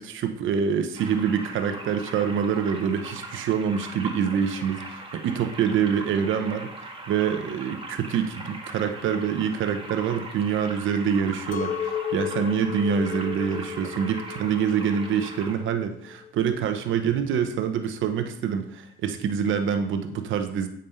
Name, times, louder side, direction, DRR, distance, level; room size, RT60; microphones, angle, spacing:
voice 1, 0.0-20.7, right 7 dB, 80° right, 8 dB, 1.0 m, -26 dB
sound 1, 0.9-15.6, right 2 dB, 25° right, 1.9 m, -40 dB
Chink clink, 11.5-16.7, left 9 dB, 40° left, 0.6 m, -34 dB
9.0 x 5.3 x 5.6 m, 0.76 s
cardioid pair, 90°, 20 cm